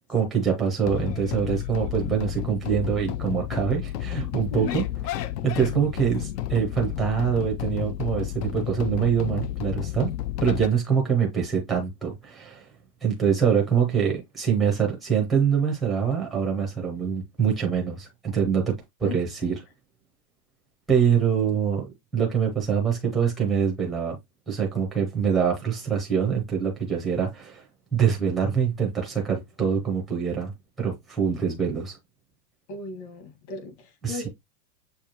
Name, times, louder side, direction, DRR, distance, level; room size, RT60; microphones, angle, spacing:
voice 1, 0.1-4.8 5.4-10.1 10.4-12.6 13.0-18.7 19.0-19.5 20.9-21.9 22.1-24.2 24.5-27.6 27.9-30.5 30.8-32.0 34.0-34.2, right 7 dB, ahead, 0.4 m, -24 dB
sound 1, 0.8-10.7, left 13 dB, 75° left, 0.6 m, -31 dB
voice 2, 32.7-34.3, left 4 dB, 40° left, 1.6 m, -36 dB
6.5 x 2.3 x 2.9 m
supercardioid pair, 150°, 49 cm